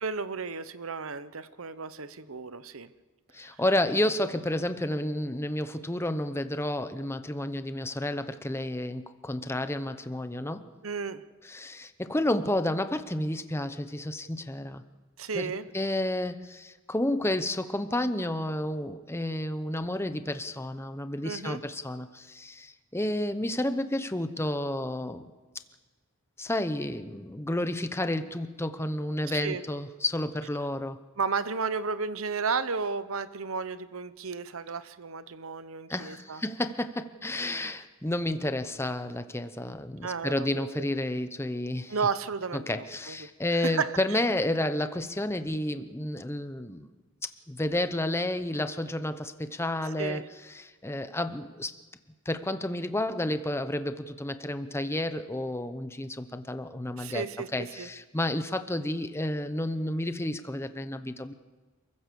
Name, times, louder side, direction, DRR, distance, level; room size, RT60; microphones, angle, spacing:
voice 1, 0.0-2.9 10.8-11.2 15.2-15.7 21.2-21.6 29.3-29.6 31.2-36.4 40.0-40.9 41.9-43.3 43.6-43.9 50.0-50.2 57.0-57.9, right 5 dB, 70° right, 14 dB, 0.9 m, -33 dB
voice 2, 3.3-10.7 11.4-14.8 15.3-25.3 26.4-31.0 35.9-42.0 42.5-46.9 47.2-51.8 52.2-61.3, left 1 dB, 10° left, 10 dB, 0.9 m, -31 dB
28.0 x 15.5 x 7.0 m, 1.3 s
head